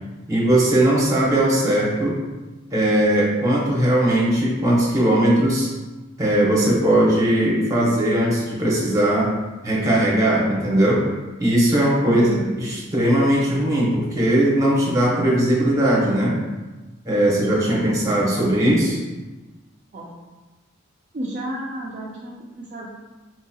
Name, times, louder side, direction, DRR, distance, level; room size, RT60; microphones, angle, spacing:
voice 1, 0.3-2.2 2.7-5.7 6.2-9.3 9.6-11.0 11.4-12.2 12.6-16.4 17.1-19.0, right 1 dB, 15° right, -5 dB, 0.8 m, -19 dB
voice 2, 12.0-12.6 19.9-20.1 21.1-22.9, right 1 dB, 40° right, -5 dB, 0.4 m, -30 dB
4.5 x 2.8 x 2.3 m, 1.2 s
head